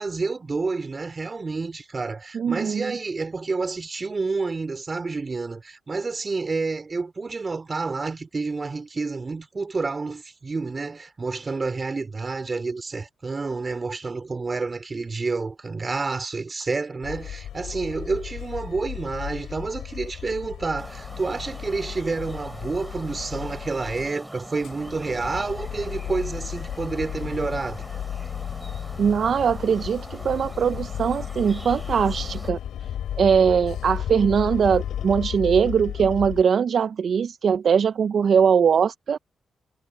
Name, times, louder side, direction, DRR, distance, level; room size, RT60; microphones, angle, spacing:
voice 1, 0.0-27.9, right 4 dB, 35° right, 4.0 m, -29 dB
voice 2, 2.3-3.0 29.0-32.6 33.2-39.2, right 7 dB, 60° right, 0.4 m, -21 dB
sound 1, 17.0-24.1 24.4-36.4, left 10 dB, 85° left, 2.9 m, -34 dB
sound 2, 20.8-32.5, equal, ahead, 3.9 m, -42 dB
cardioid pair, 70°, 0 cm